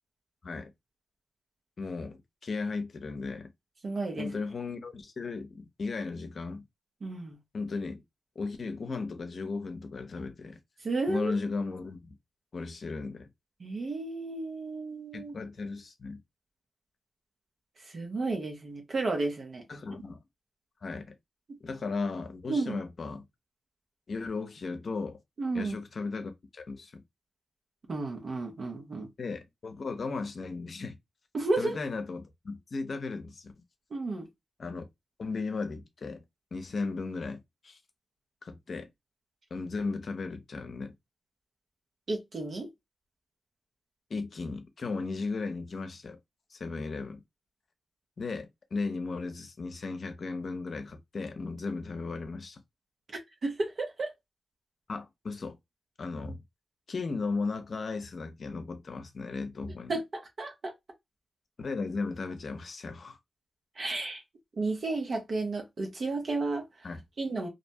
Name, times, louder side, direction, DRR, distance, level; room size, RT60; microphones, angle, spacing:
voice 1, 1.8-2.2 2.4-3.5 4.2-6.6 7.5-8.0 8.4-10.6 11.1-12.1 12.5-13.3 15.1-16.2 19.7-20.2 20.8-21.1 21.6-23.2 24.1-25.2 25.5-27.0 29.2-31.0 31.6-33.5 34.6-34.8 35.2-36.2 36.5-37.8 38.4-38.9 39.5-40.9 44.1-46.2 46.5-47.2 48.2-52.6 54.9-55.6 56.0-56.4 56.9-59.9 61.6-63.2 66.8-67.0, left 4 dB, 60° left, 0.7 m, -36 dB
voice 2, 3.8-4.4 7.0-7.4 10.8-11.4 13.6-15.3 17.8-19.7 21.5-21.6 22.5-22.8 25.4-25.8 27.9-29.1 31.3-31.8 33.9-34.3 42.1-42.7 53.4-54.1 59.9-60.7 63.8-64.2 64.5-66.9 67.2-67.5, right 3 dB, 60° right, 0.8 m, -32 dB
2.6 x 2.1 x 2.7 m
supercardioid pair, 45°, 0 cm